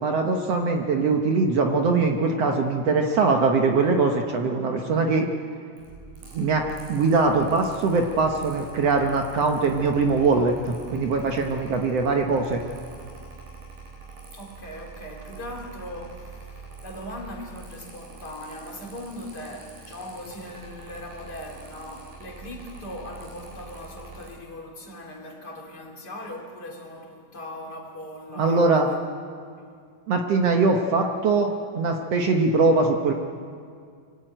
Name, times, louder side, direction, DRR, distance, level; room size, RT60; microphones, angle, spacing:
voice 1, 0.0-5.3 6.3-12.6 28.4-28.9 30.1-33.1, right 3 dB, 60° right, 3 dB, 1.8 m, -22 dB
Mechanical fan, 5.8-24.3, right 4 dB, 85° right, 7.0 m, -44 dB
voice 2, 14.3-29.1 29.6-29.7, left 1 dB, 30° left, 1 dB, 2.9 m, -39 dB
24.5 x 15.5 x 9.0 m, 2.2 s
omnidirectional pair, 3.9 m